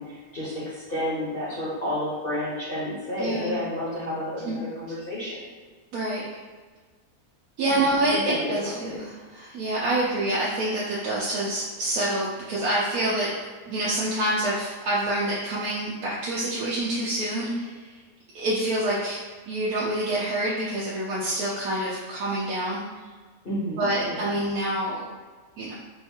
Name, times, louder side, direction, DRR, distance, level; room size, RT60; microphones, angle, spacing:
voice 1, 0.0-5.4 7.6-8.5 8.8-9.0 23.4-24.2, left 1 dB, 40° left, -10 dB, 1.1 m, -31 dB
voice 2, 3.2-3.6 4.4-4.5 5.9-6.4 7.6-13.3 13.7-18.0 18.3-19.2 19.5-22.8 23.8-25.0 25.6-25.7, right 1 dB, 85° right, -7 dB, 1.1 m, -27 dB
4.3 x 2.3 x 2.8 m, 1.4 s
omnidirectional pair, 1.5 m